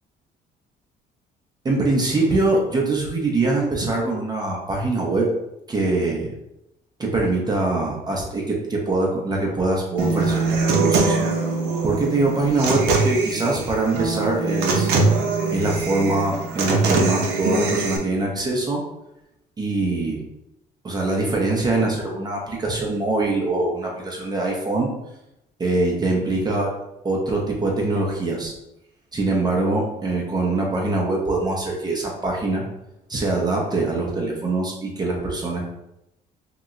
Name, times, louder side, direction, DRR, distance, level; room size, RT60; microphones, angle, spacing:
voice 1, 1.6-5.3 5.7-6.3 7.0-11.2 11.8-14.9 15.5-18.8 19.6-20.2 20.8-24.9 25.6-26.7 27.0-28.5 29.1-32.6 33.1-35.7, right 2 dB, 25° right, -2 dB, 0.6 m, -23 dB
Human voice / Acoustic guitar, 10.0-18.0, right 3 dB, 75° right, 0.7 m, -22 dB
2.9 x 2.1 x 3.7 m, 0.87 s
cardioid pair, 110°, 17 cm